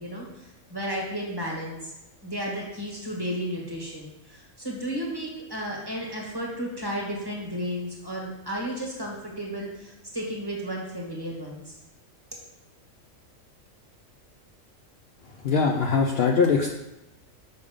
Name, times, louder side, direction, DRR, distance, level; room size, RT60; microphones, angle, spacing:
voice 1, 0.0-1.9 2.2-11.7, equal, 20° right, -3 dB, 1.4 m, -33 dB
voice 2, 15.4-16.7, left 5 dB, 60° left, 0 dB, 0.7 m, -21 dB
6.2 x 5.0 x 3.6 m, 0.96 s
omnidirectional pair, 1.4 m